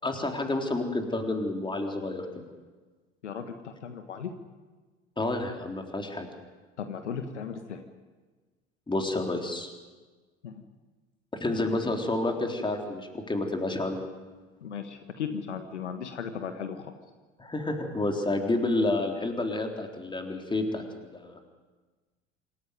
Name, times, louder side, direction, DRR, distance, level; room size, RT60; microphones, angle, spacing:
voice 1, 0.0-2.4 5.2-6.3 8.9-9.7 11.3-14.0 17.4-21.4, left 2 dB, 15° left, 3 dB, 3.7 m, -29 dB
voice 2, 3.2-4.3 6.8-7.8 10.4-10.6 14.6-16.9, left 7 dB, 75° left, 8 dB, 1.6 m, -36 dB
26.5 x 14.5 x 9.4 m, 1.3 s
figure-of-eight pair, 70°, 35 cm